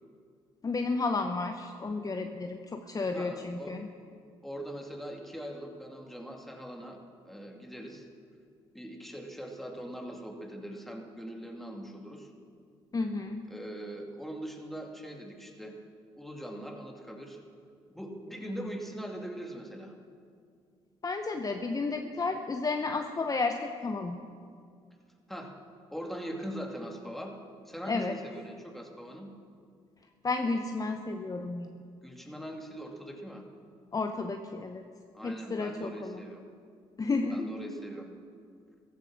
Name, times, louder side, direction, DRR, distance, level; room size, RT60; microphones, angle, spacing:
voice 1, 0.6-3.9 12.9-13.5 21.0-24.2 27.9-28.1 30.2-31.8 33.9-34.8 35.2-36.2 37.0-37.5, left 3 dB, 30° left, 5 dB, 0.8 m, -32 dB
voice 2, 2.9-3.8 4.4-7.0 7.2-8.1 8.7-12.3 13.5-15.8 16.2-17.4 17.9-19.9 25.3-25.5 25.9-27.3 27.7-29.3 32.0-33.4 35.1-36.4 37.3-38.1, equal, ahead, 2 dB, 2.3 m, -41 dB
15.0 x 12.0 x 6.2 m, 2.2 s
supercardioid pair, 70°, 12 cm